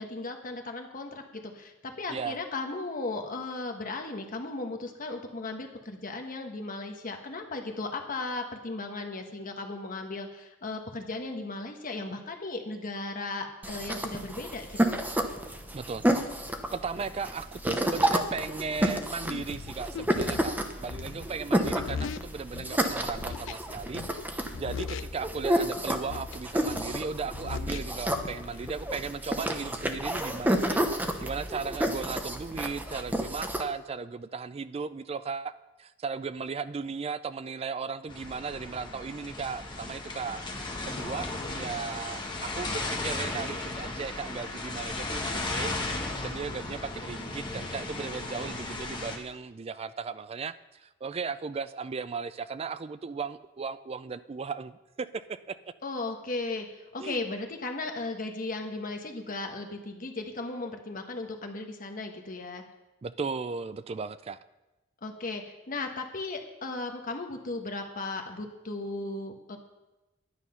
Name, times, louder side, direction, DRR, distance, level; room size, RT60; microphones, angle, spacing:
voice 1, 0.0-15.0 55.8-62.6 65.0-69.6, left 2 dB, 45° left, 4 dB, 1.3 m, -36 dB
sound 1, 13.6-33.6, right 1 dB, 10° right, 0.8 m, -30 dB
voice 2, 15.7-16.1 16.7-35.5 35.8-41.3 41.5-55.6 57.0-57.2 63.0-64.4, right 5 dB, 30° right, 14 dB, 0.4 m, -36 dB
sound 2, 18.8-22.8 23.2-24.3 24.5-25.6 26.0-28.7, left 5 dB, 75° left, 0.4 m, -40 dB
sound 3, 38.1-49.2, left 2 dB, 25° left, 1.6 m, -35 dB
11.0 x 9.8 x 5.6 m, 1.0 s
head